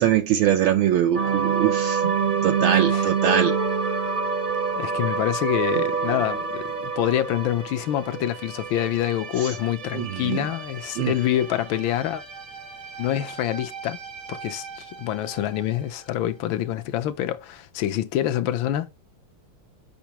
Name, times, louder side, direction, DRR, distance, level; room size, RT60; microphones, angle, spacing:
voice 1, 0.0-2.0 2.4-3.6 9.9-10.4 11.0-11.1, right 10 dB, 75° right, 1.4 m, -22 dB
sound 1, 1.1-15.6, right 6 dB, 45° right, 0.6 m, -28 dB
voice 2, 2.7-3.1 4.8-12.2 13.0-14.0 14.3-18.9, left 12 dB, 70° left, 1.4 m, -26 dB
7.0 x 5.4 x 2.9 m
omnidirectional pair, 2.4 m